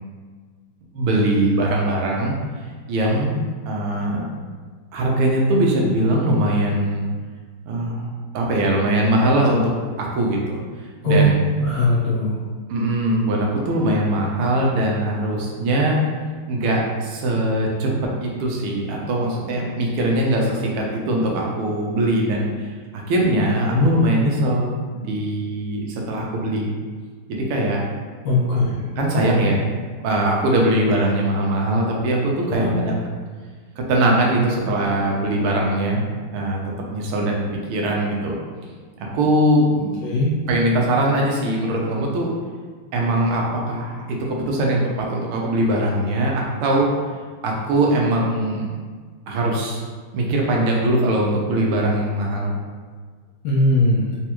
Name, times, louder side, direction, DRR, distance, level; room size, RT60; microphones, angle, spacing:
voice 1, 0.9-2.4 2.9-4.3 4.9-7.1 7.6-8.1 8.3-9.7 10.0-10.6 11.0-11.5 12.7-16.0 16.5-26.7 27.3-27.8 28.5-28.6 29.0-29.6 30.0-32.9 33.9-36.6 36.9-37.4 37.7-38.4 39.1-40.1 40.5-42.3 42.9-46.9 47.4-48.6 49.3-49.8 50.1-52.5, right 1 dB, 85° right, -1 dB, 1.6 m, -21 dB
voice 2, 11.6-12.3 23.7-24.0 28.2-28.8 32.6-32.7 40.0-40.3 53.4-54.1, left 1 dB, 75° left, -5 dB, 1.1 m, -19 dB
4.1 x 2.3 x 2.9 m, 1.5 s
omnidirectional pair, 2.4 m